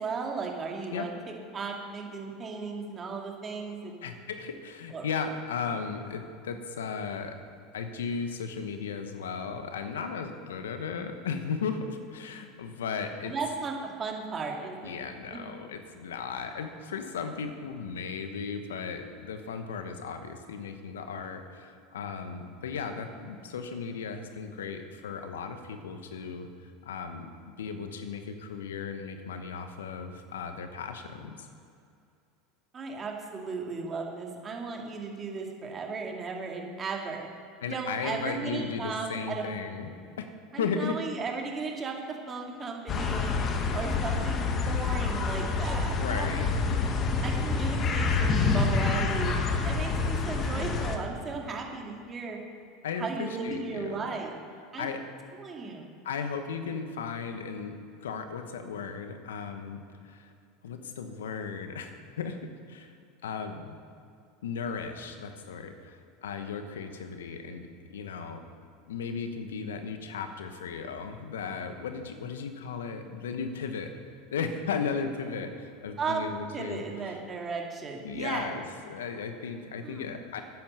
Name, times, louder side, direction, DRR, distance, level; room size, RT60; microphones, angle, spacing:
voice 1, 0.0-4.0 4.9-5.1 13.2-14.9 15.3-15.5 32.7-37.3 37.7-39.5 40.5-43.3 43.7-46.8 47.2-49.3 49.6-52.4 53.0-54.3 54.7-54.9 55.4-55.9 76.0-76.3 76.5-78.6 79.8-80.1, right 4 dB, 30° right, 1 dB, 2.2 m, -35 dB
voice 2, 4.0-7.3 7.7-13.3 14.8-26.5 26.8-31.5 37.6-40.3 40.6-41.0 46.0-46.5 52.8-54.2 54.8-55.0 56.0-57.7 58.0-60.3 60.6-62.4 62.7-62.9 63.2-63.8 64.4-68.4 68.9-73.9 74.3-77.2 78.0-80.4, left 5 dB, 80° left, 7 dB, 1.1 m, -36 dB
sound 1, 42.9-51.0, left 4 dB, 40° left, 1.4 m, -27 dB
10.5 x 9.6 x 6.7 m, 2.5 s
hypercardioid pair, 85°, 0 cm